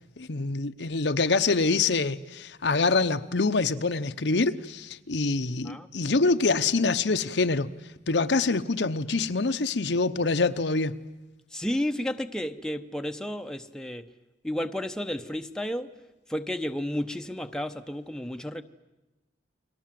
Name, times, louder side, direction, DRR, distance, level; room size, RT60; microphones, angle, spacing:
voice 1, 0.2-7.7 8.1-10.9, left 3 dB, 70° left, 9 dB, 0.9 m, -25 dB
voice 2, 11.5-14.0 14.4-15.9 16.3-18.6, left 1 dB, 5° left, 6 dB, 0.9 m, -32 dB
30.0 x 22.5 x 7.7 m, 1.1 s
head